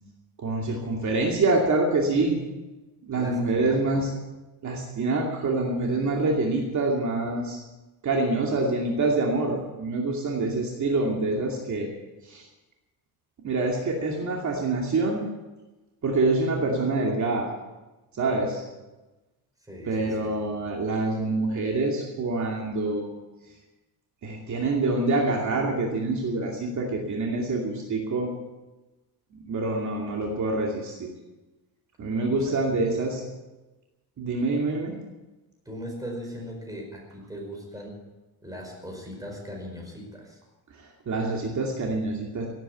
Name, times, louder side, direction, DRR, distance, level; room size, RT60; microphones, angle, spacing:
voice 1, 0.4-2.4 3.1-4.1 4.6-7.6 8.0-11.9 12.2-12.5 13.4-15.2 16.0-17.5 18.1-18.6 19.9-23.1 24.2-28.3 29.3-31.1 32.0-33.2 34.2-34.9 40.7-42.5, right 2 dB, 45° right, -1 dB, 2.6 m, -26 dB
voice 2, 3.1-4.0 19.6-20.3 20.6-20.7 32.3-32.4 32.7-32.9 35.6-38.0 38.4-40.4, equal, 10° right, 0 dB, 5.0 m, -39 dB
17.5 x 9.4 x 8.2 m, 1.1 s
cardioid pair, 145°, 40 cm